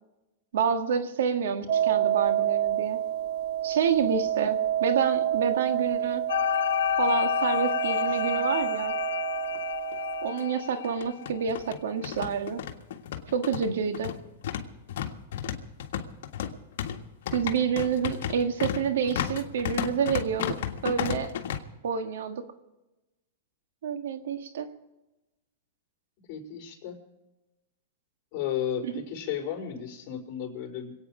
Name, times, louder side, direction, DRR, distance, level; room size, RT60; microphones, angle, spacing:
voice 1, 0.5-3.0 3.6-6.2 7.0-8.9 10.2-12.6 13.3-14.2 17.3-20.6 20.8-21.3 21.8-22.4 23.8-24.7 28.8-29.0, right 7 dB, 80° right, 7 dB, 1.7 m, -28 dB
sound 1, 1.7-10.3, right 11 dB, 50° right, 0.9 m, -28 dB
sound 2, 6.3-11.4, left 11 dB, 85° left, 0.5 m, -29 dB
sound 3, 9.5-9.6 9.9-10.0 10.8-21.6, left 9 dB, 70° left, 1.7 m, -33 dB
voice 2, 26.3-27.0 28.3-30.9, left 9 dB, 40° left, -1 dB, 4.6 m, -33 dB
26.5 x 9.1 x 5.1 m, 1.0 s
hypercardioid pair, 145°, 0 cm